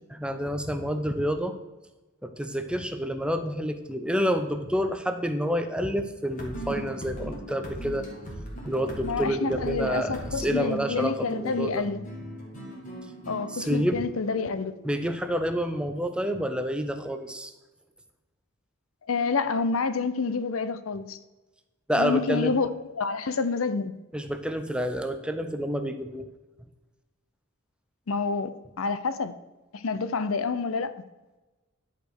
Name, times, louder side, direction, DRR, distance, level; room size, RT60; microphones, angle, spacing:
voice 1, 0.1-1.6 2.2-8.1 8.6-11.8 13.5-14.0 14.8-17.5 21.9-22.5 24.1-26.3, equal, 5° right, 0.6 m, -28 dB
sound 1, 6.3-15.7, right 1 dB, 40° left, 2.1 m, -39 dB
voice 2, 9.0-12.0 13.3-14.7 19.1-21.2 22.0-23.9 28.1-28.5 28.8-29.3 29.7-30.9, left 4 dB, 80° left, 0.6 m, -28 dB
11.0 x 5.1 x 6.3 m
head